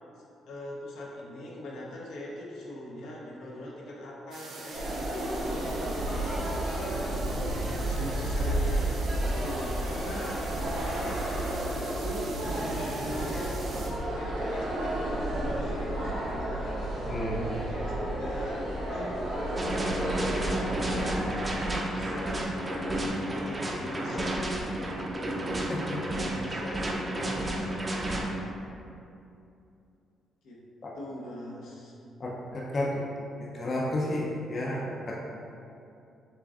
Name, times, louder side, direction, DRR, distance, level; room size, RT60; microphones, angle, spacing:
voice 1, 0.4-5.0 5.5-12.3 13.0-13.6 14.1-16.9 17.5-21.2 21.9-25.0 26.0-28.2 30.4-30.6 30.9-31.9, left 1 dB, 80° left, -4 dB, 0.8 m, -41 dB
sound 1, 4.3-13.9, right 2 dB, 65° right, 0.7 m, -43 dB
sound 2, 4.7-21.8, right 1 dB, 85° right, 1.4 m, -31 dB
voice 2, 17.1-17.4 25.7-26.0 30.8-30.9 32.2-33.0 33.5-35.2, left 1 dB, 45° left, -4 dB, 0.5 m, -31 dB
sound 3, 19.6-28.3, right 1 dB, 25° right, 0.6 m, -32 dB
6.6 x 2.5 x 2.4 m, 2.6 s
cardioid pair, 90°, 0 cm